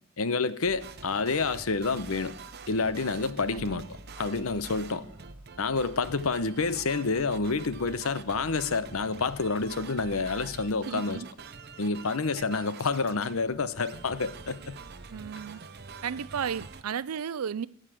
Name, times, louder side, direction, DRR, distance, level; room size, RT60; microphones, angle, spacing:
voice 1, 0.2-2.3 2.7-3.9 4.2-5.0 5.6-11.2 11.8-14.8, left 4 dB, 75° left, 0.8 m, -28 dB
sound 1, 0.6-10.8, equal, 70° right, 1.8 m, -52 dB
sound 2, 0.8-16.8, right 5 dB, 45° right, 0.7 m, -46 dB
voice 2, 10.7-11.3 15.1-15.6 16.0-17.7, right 7 dB, 85° right, 0.4 m, -34 dB
14.5 x 9.1 x 7.7 m
head